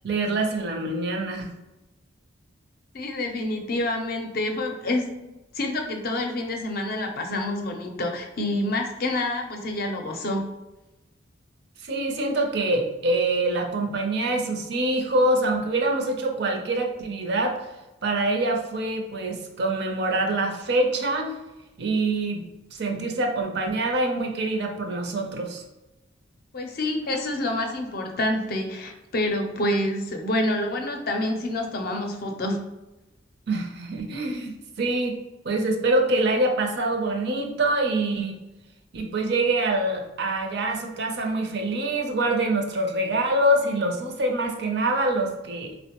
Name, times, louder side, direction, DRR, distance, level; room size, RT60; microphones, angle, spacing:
voice 1, 0.0-1.5 11.8-17.6 18.0-21.3 21.8-22.4 22.7-25.6 33.5-35.2 35.4-38.4 38.9-45.7, right 2 dB, 60° right, 3 dB, 0.5 m, -25 dB
voice 2, 2.9-5.2 5.5-10.4 26.5-32.6, left 1 dB, 50° left, 3 dB, 0.5 m, -27 dB
3.8 x 2.1 x 2.8 m, 1.0 s
head